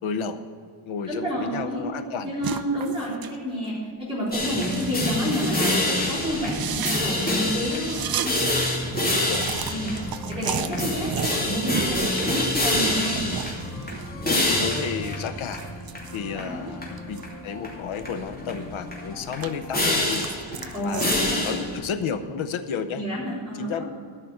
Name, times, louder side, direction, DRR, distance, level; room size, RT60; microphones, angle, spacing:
voice 1, 0.0-0.5 0.8-2.4 9.1-9.5 14.2-15.6 16.1-20.3 20.8-23.1 23.5-23.8, left 6 dB, 75° left, 10 dB, 0.9 m, -32 dB
voice 2, 1.1-1.8 2.2-3.7 4.1-8.4 9.7-9.9 10.3-13.2 16.3-16.7 20.7-21.6 23.0-23.9, equal, 10° right, -9 dB, 3.6 m, -29 dB
sound 1, 2.4-3.4 3.6-3.8 4.3-5.6 6.0-6.1 6.4-8.3 8.6-8.7 8.9-14.1 14.4-17.3 17.7-18.7 19.1-21.4, right 8 dB, 50° right, 0.6 m, -34 dB
sound 2, 4.3-21.8, left 1 dB, 20° left, 2.8 m, -27 dB
13.5 x 5.8 x 7.8 m, 2.2 s
wide cardioid pair, 160°, 48 cm